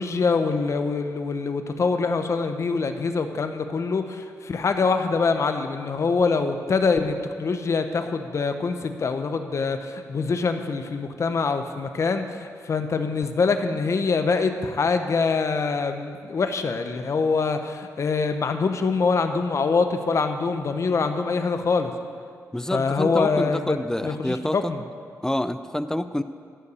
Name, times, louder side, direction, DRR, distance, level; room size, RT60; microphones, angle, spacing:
voice 1, 0.0-21.9 22.7-23.8 24.0-24.8, left 4 dB, 55° left, 7 dB, 0.8 m, -24 dB
voice 2, 22.5-24.7 25.2-26.2, left 1 dB, 10° left, 12 dB, 0.4 m, -27 dB
13.5 x 5.6 x 6.9 m, 2.2 s
cardioid pair, 85°, 6 cm